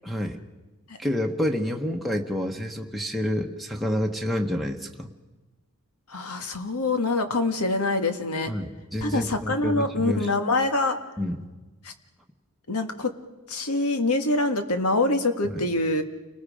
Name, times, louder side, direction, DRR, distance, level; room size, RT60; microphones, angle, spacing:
voice 1, 0.0-0.4 1.0-5.1 8.5-10.3 11.2-11.4 15.5-15.6, left 1 dB, ahead, 5 dB, 1.2 m, -28 dB
voice 2, 6.1-8.5 9.0-11.0 11.8-11.9 12.7-13.1 13.5-16.0, left 2 dB, 85° left, 7 dB, 1.8 m, -25 dB
29.5 x 20.0 x 5.0 m, 1.2 s
head